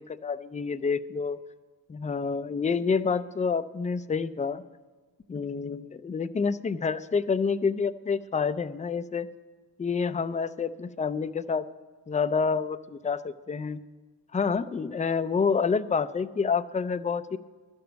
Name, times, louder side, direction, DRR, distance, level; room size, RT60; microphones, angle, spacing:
voice 1, 0.0-1.4 1.9-4.6 5.3-9.3 9.8-11.7 12.1-13.8 14.3-17.4, left 5 dB, 20° left, 12 dB, 0.3 m, -28 dB
11.5 x 6.9 x 7.8 m, 1.4 s
cardioid pair, 105°, 44 cm